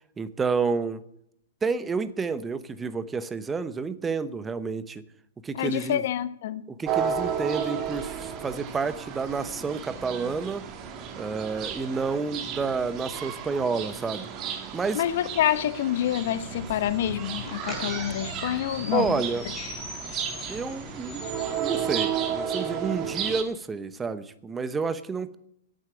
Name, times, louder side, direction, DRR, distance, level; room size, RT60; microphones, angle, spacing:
voice 1, 0.2-1.0 1.6-5.0 5.4-6.0 6.7-10.6 11.2-14.3 14.7-15.0 18.9-19.5 20.5-25.4, right 4 dB, 15° right, 14 dB, 0.9 m, -30 dB
voice 2, 5.5-6.6 14.9-19.3, left 11 dB, 60° left, 14 dB, 1.1 m, -27 dB
sound 1, 6.8-23.4, right 8 dB, 35° right, 1.8 m, -33 dB
sound 2, 16.0-22.0, left 2 dB, 10° left, 6.1 m, -40 dB
10.5 x 8.9 x 9.8 m, 0.72 s
hypercardioid pair, 130°, 0 cm